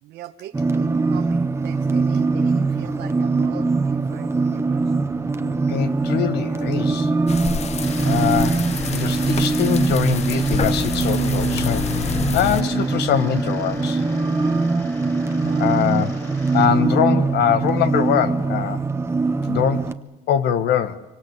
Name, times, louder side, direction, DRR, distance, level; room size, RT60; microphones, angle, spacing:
voice 1, 0.0-4.8 15.4-16.0, right 12 dB, 80° right, 5 dB, 1.4 m, -40 dB
sound 1, 0.5-19.9, right 3 dB, 15° right, 1.1 m, -22 dB
voice 2, 5.7-7.1 8.0-14.0 15.4-16.1 16.5-18.8 19.4-19.9 20.3-21.0, left 9 dB, 75° left, 11 dB, 1.7 m, -23 dB
sound 2, 7.3-12.6, left 8 dB, 40° left, 0.8 m, -28 dB
sound 3, 7.8-16.7, left 1 dB, 20° left, 5.5 m, -42 dB
25.0 x 24.5 x 8.3 m, 1.0 s
cardioid pair, 110°, 17 cm